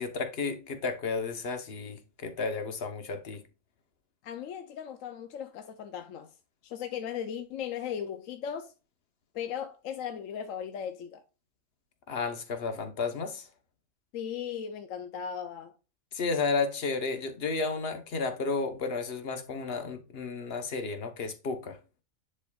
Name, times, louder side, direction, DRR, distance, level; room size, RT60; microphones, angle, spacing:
voice 1, 0.0-3.4 12.1-13.5 16.1-21.8, left 4 dB, 50° left, 1.1 m, -32 dB
voice 2, 4.2-6.3 6.6-8.7 9.3-11.2 14.1-15.8, left 8 dB, 75° left, 1.0 m, -37 dB
9.9 x 4.4 x 2.3 m
omnidirectional pair, 1.4 m